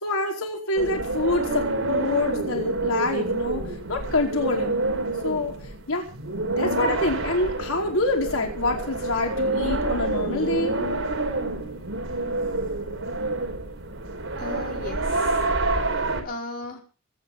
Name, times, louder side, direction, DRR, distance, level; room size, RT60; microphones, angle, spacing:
voice 1, 0.0-3.6 3.9-4.8 5.2-5.5 5.9-6.0 6.5-10.8, left 2 dB, 90° left, 1 dB, 4.6 m, -26 dB
sound 1, 0.8-16.2, right 2 dB, 75° right, 5.0 m, -27 dB
voice 2, 14.4-15.5 15.8-16.8, left 2 dB, 45° left, 0 dB, 5.2 m, -37 dB
24.0 x 9.8 x 5.6 m, 0.37 s
head